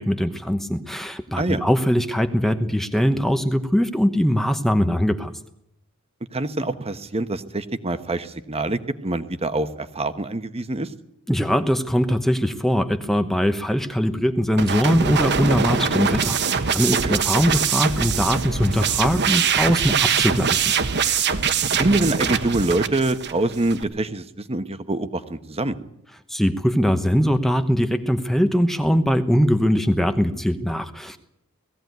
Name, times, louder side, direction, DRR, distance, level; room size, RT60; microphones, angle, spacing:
voice 1, 0.0-5.4 11.3-16.4 16.7-20.6 26.3-31.2, equal, ahead, 8 dB, 1.0 m, -21 dB
voice 2, 6.3-10.9 17.0-17.2 21.7-25.8, right 2 dB, 30° right, 10 dB, 1.1 m, -25 dB
sound 1, 14.6-23.8, right 6 dB, 50° right, 1.2 m, -23 dB
18.5 x 15.5 x 9.4 m, 0.77 s
head